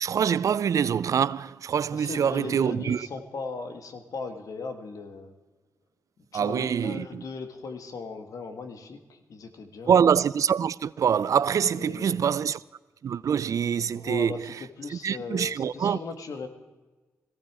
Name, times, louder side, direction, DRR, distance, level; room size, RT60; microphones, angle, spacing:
voice 1, 0.0-3.1 6.3-7.2 9.9-12.6 13.0-14.5 14.9-16.0, right 7 dB, 70° right, 0.4 m, -25 dB
voice 2, 1.9-5.4 6.2-9.9 11.7-12.4 14.0-16.5, left 4 dB, 80° left, 1.7 m, -38 dB
17.5 x 15.5 x 4.9 m
cardioid pair, 75°, 6 cm